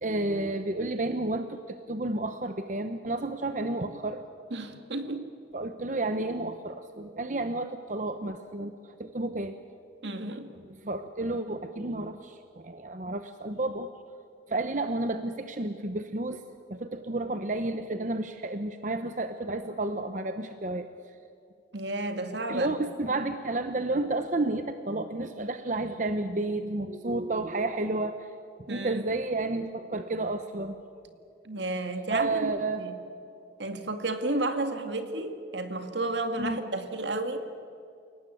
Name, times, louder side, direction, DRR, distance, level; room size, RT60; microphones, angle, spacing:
voice 1, 0.0-4.2 5.5-9.5 10.8-13.9 14.5-16.4 16.7-20.9 22.5-28.2 28.7-30.8 32.1-32.8 36.4-36.6, right 2 dB, 45° right, 9 dB, 0.9 m, -31 dB
voice 2, 4.5-5.3 10.0-10.5 21.7-22.8 28.7-29.0 31.4-32.5 32.8-32.9 33.6-37.4, right 2 dB, 75° right, 7 dB, 2.1 m, -32 dB
29.0 x 18.5 x 8.6 m, 2.5 s
head